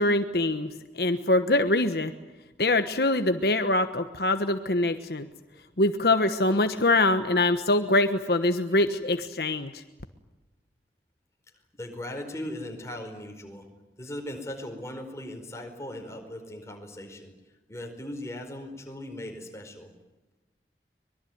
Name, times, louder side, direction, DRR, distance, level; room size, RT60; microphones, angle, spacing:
voice 1, 0.0-2.1 2.6-5.3 5.8-9.8, left 2 dB, 65° left, 9 dB, 1.3 m, -24 dB
voice 2, 11.7-13.7 14.0-17.3 17.7-19.9, left 1 dB, 15° left, 4 dB, 4.9 m, -38 dB
25.0 x 22.0 x 9.4 m, 1.1 s
head